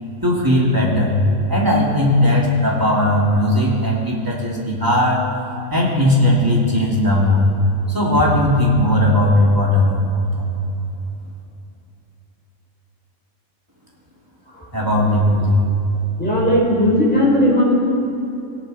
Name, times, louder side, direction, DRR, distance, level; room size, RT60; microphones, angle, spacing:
voice 1, 0.2-1.2 1.5-5.2 5.7-7.5 7.9-10.5 14.7-15.6, left 1 dB, 15° right, -4 dB, 2.7 m, -17 dB
voice 2, 16.2-17.6, left 1 dB, 5° left, -6 dB, 4.8 m, -16 dB
18.0 x 18.0 x 4.3 m, 3.0 s
omnidirectional pair, 1.4 m